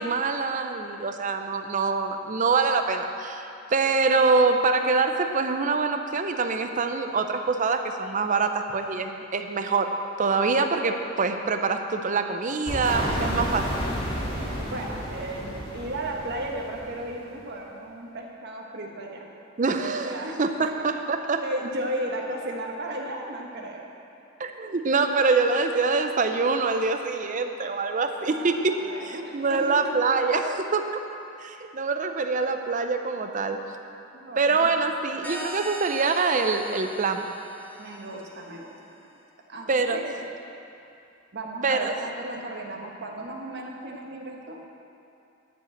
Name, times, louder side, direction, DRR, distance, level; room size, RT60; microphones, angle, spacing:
voice 1, 0.0-13.7 19.6-21.4 24.4-28.8 29.0-31.0 31.4-33.6 34.4-37.3 39.7-40.0 41.6-41.9, right 4 dB, 40° right, 6 dB, 0.6 m, -25 dB
sound 1, 12.7-17.3, equal, 25° left, 1.9 m, -31 dB
voice 2, 14.4-19.3 20.0-20.4 21.4-23.8 28.3-29.9 34.1-34.7 37.8-38.7 39.5-40.3 41.3-44.6, right 1 dB, 55° right, 0 dB, 1.2 m, -35 dB
sound 2, 35.2-38.6, equal, 10° left, 1.0 m, -40 dB
11.0 x 4.9 x 7.8 m, 2.7 s
head